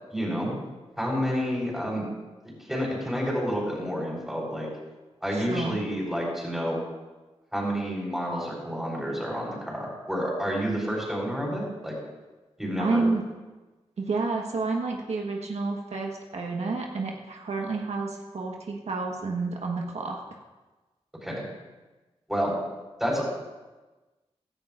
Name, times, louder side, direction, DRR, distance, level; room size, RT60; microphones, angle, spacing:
voice 1, 0.1-0.5 1.0-2.0 2.4-4.7 5.2-6.8 7.5-12.0 12.6-13.0 21.2-21.4 22.3-22.6 23.0-23.3, equal, 5° right, -3 dB, 4.1 m, -29 dB
voice 2, 5.3-5.8 12.8-13.2 14.0-20.2, right 3 dB, 75° right, 0 dB, 1.4 m, -30 dB
16.0 x 14.5 x 2.6 m, 1.2 s
wide cardioid pair, 135°, 11 cm